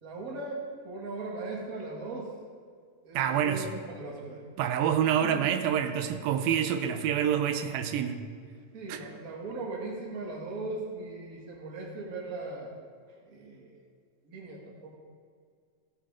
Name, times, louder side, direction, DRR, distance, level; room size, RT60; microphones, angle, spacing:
voice 1, 0.0-2.3 3.0-4.4 5.2-5.4 8.7-12.7 13.2-13.8 14.2-15.0, right 3 dB, 35° right, -3 dB, 1.5 m, -38 dB
voice 2, 3.2-3.7 4.6-8.2 8.9-9.0, right 9 dB, 85° right, 8 dB, 2.4 m, -27 dB
15.5 x 7.7 x 3.8 m, 2.1 s
omnidirectional pair, 4.1 m